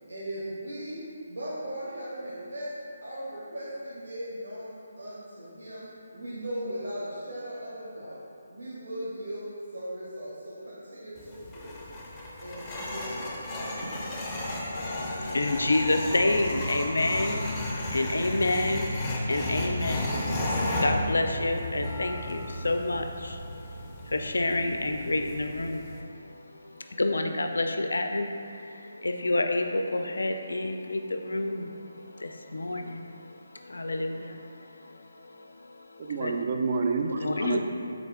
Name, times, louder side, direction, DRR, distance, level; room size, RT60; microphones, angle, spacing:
voice 1, 0.1-2.7 3.0-5.9 6.1-8.2 8.5-11.7 12.4-13.2, right 1 dB, 80° right, -8 dB, 1.1 m, -38 dB
sound 1, 11.2-26.0, left 1 dB, 15° left, 0.5 m, -33 dB
voice 2, 14.7-18.9 19.3-36.4 37.2-37.6, left 2 dB, 75° left, 5 dB, 0.3 m, -29 dB
voice 3, 36.0-37.6, right 4 dB, 40° right, 4 dB, 0.3 m, -28 dB
3.8 x 3.5 x 3.5 m, 2.5 s
figure-of-eight pair, 150°, 0 cm